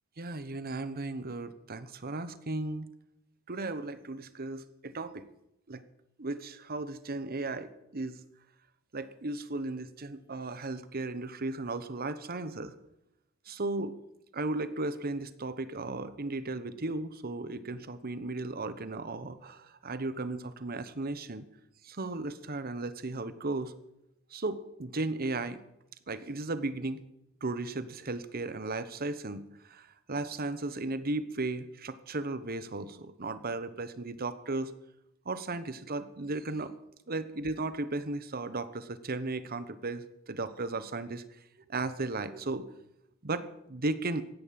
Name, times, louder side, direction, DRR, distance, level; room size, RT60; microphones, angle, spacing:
voice 1, 0.2-2.9 3.5-5.2 5.7-5.8 6.2-8.2 8.9-12.7 13.5-14.0 14.3-21.4 21.8-23.7 24.3-25.6 26.1-27.0 27.4-34.7 35.2-36.7 37.1-41.2 41.7-42.8 43.2-44.2, right 2 dB, 45° right, 13 dB, 1.1 m, -35 dB
16.0 x 10.5 x 7.7 m, 0.84 s
head